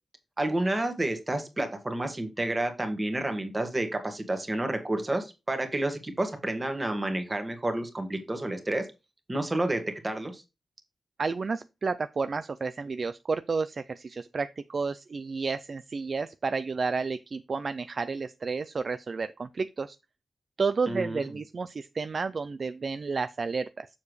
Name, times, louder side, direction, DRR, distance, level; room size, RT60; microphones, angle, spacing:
voice 1, 0.4-8.8 9.3-10.4 20.9-21.3, right 1 dB, 20° right, 1.7 m, -30 dB
voice 2, 11.2-20.0 20.6-23.9, right 4 dB, 45° right, 0.4 m, -31 dB
7.2 x 6.8 x 3.2 m
wide cardioid pair, 150°, 0 cm